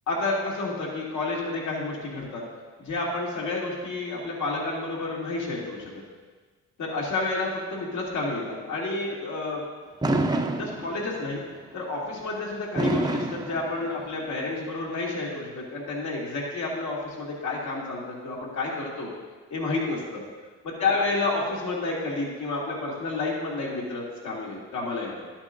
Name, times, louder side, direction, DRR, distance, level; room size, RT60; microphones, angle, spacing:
voice 1, 0.1-2.4 2.8-5.9 6.8-9.6 10.6-11.4 11.7-19.1 19.5-20.2 20.6-25.1, left 3 dB, 70° left, -4 dB, 2.5 m, -30 dB
Fireworks, 10.0-11.3 12.8-14.3, right 2 dB, 15° right, 0.6 m, -27 dB
12.5 x 8.7 x 2.6 m, 1.4 s
cardioid pair, 90°, 30 cm